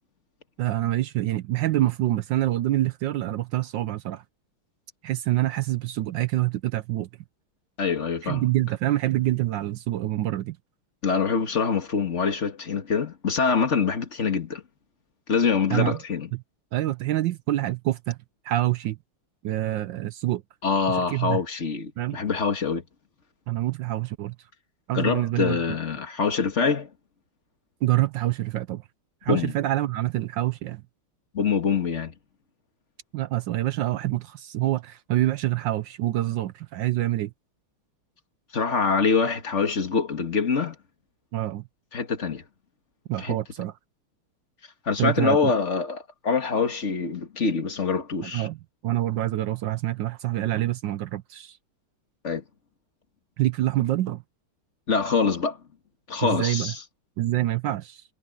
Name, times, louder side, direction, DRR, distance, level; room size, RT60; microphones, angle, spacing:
voice 1, 0.6-4.2 5.0-7.1 8.2-10.6 15.7-16.0 16.3-16.4 16.7-18.2 18.4-19.0 19.4-20.4 20.9-21.4 22.0-22.2 23.5-24.4 24.9-25.6 27.8-28.8 29.2-30.8 33.1-37.3 41.3-41.6 43.1-43.7 45.0-45.5 48.2-48.6 48.8-51.6 53.4-54.2 56.2-56.7 57.2-58.0, right 15 dB, 70° right, 1.2 m, -26 dB
voice 2, 7.8-8.4 11.0-14.6 15.3-16.3 20.6-22.8 24.9-26.9 29.3-29.5 31.3-32.1 38.5-40.8 41.9-42.4 43.2-43.4 44.9-48.5 52.2-52.4 54.9-55.6 56.1-56.8, left 5 dB, 35° left, 2.0 m, -25 dB
omnidirectional pair, 2.4 m